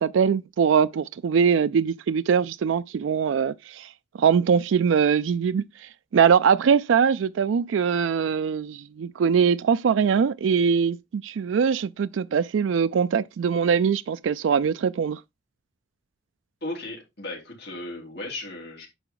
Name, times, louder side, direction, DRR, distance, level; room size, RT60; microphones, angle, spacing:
voice 1, 0.0-3.9 4.2-15.2, right 6 dB, 85° right, 0.3 m, -22 dB
voice 2, 16.6-18.9, left 2 dB, 55° left, 4.1 m, -36 dB
9.1 x 5.7 x 3.9 m
head